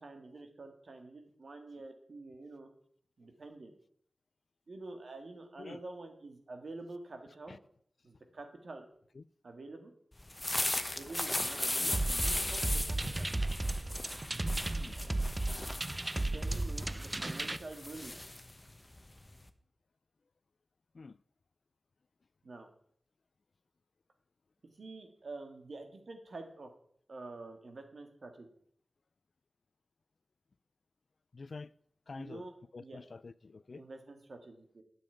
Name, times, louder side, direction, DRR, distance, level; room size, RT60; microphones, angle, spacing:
voice 1, 0.0-2.7 3.2-3.7 4.7-7.6 8.0-8.8 9.4-9.9 10.9-13.3 16.2-18.2 22.4-22.7 24.8-26.7 27.1-28.5 32.1-33.0 33.8-34.8, right 2 dB, 75° right, 2.2 m, -48 dB
sound 1, 10.2-19.5, left 1 dB, 30° left, 1.0 m, -37 dB
sound 2, 11.9-17.6, right 2 dB, 35° right, 0.6 m, -34 dB
voice 2, 31.3-31.7 32.1-32.4 32.7-33.8, left 4 dB, 70° left, 0.4 m, -46 dB
9.3 x 6.9 x 8.5 m
cardioid pair, 40°, 0 cm